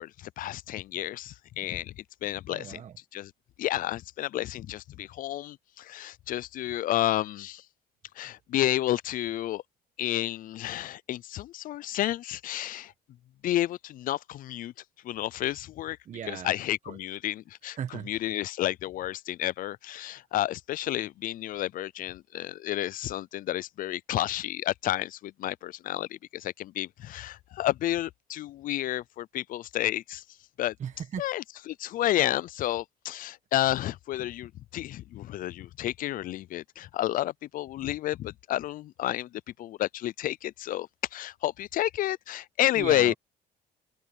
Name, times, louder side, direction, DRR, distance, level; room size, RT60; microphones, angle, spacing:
voice 1, 0.0-2.8 3.1-3.3 3.6-7.6 8.2-9.6 10.0-12.9 13.4-14.7 15.0-16.0 16.3-17.8 18.1-30.2 30.6-30.7 31.2-43.1, left 14 dB, 55° left, 0.4 m, -31 dB
voice 2, 2.5-3.0 16.0-16.5 16.9-17.0 17.8-18.5 30.8-31.3 42.7-43.1, right 8 dB, 45° right, 1.3 m, -37 dB
open air
cardioid pair, 110°, 17 cm